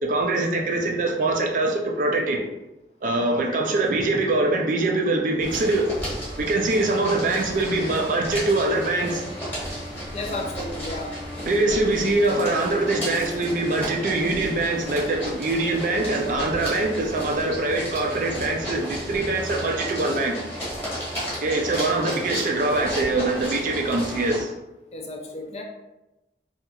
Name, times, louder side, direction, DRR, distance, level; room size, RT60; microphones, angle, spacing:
voice 1, 0.0-2.4 3.0-5.9 6.4-9.2 11.5-20.4 21.4-24.5, right 2 dB, 50° right, 1 dB, 0.3 m, -23 dB
sound 1, 5.4-24.4, equal, 10° left, 1.0 m, -33 dB
voice 2, 10.1-11.2 24.9-25.6, left 2 dB, 35° left, 2 dB, 0.3 m, -33 dB
2.8 x 2.4 x 2.3 m, 0.97 s
head